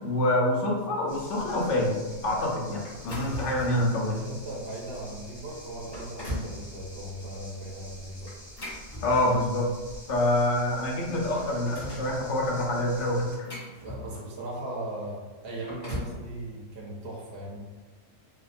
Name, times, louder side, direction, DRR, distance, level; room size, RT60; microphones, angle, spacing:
voice 1, 0.0-4.2 9.0-9.7 10.1-13.3, left 1 dB, 70° left, -2 dB, 0.9 m, -26 dB
sound 1, 1.1-13.4, equal, 50° left, 1.1 m, -47 dB
sound 2, 2.8-3.9 4.5-4.6 5.2-5.3 5.8-6.6 8.3-9.6 10.6-10.7 11.1-12.1 13.0-14.4 15.4-16.2, left 1 dB, 25° left, 0.7 m, -39 dB
voice 2, 4.1-8.3 13.8-17.6, right 1 dB, 35° right, -4 dB, 0.4 m, -38 dB
2.7 x 2.1 x 2.4 m, 1.3 s
omnidirectional pair, 1.3 m